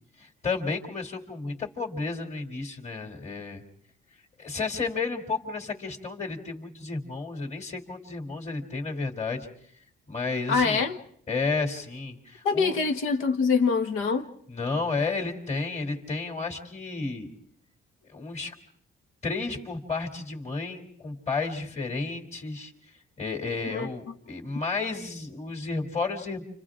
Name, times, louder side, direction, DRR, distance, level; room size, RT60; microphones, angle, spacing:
voice 1, 0.2-3.6 4.4-9.5 10.1-10.8 11.3-12.7 14.5-17.3 18.1-18.5 19.2-22.7 23.2-26.4, left 4 dB, 35° left, 2.8 m, -32 dB
voice 2, 10.5-11.0 12.4-14.3 23.7-23.9, left 5 dB, 90° left, 1.4 m, -24 dB
29.5 x 27.0 x 3.7 m
cardioid pair, 90°, 20 cm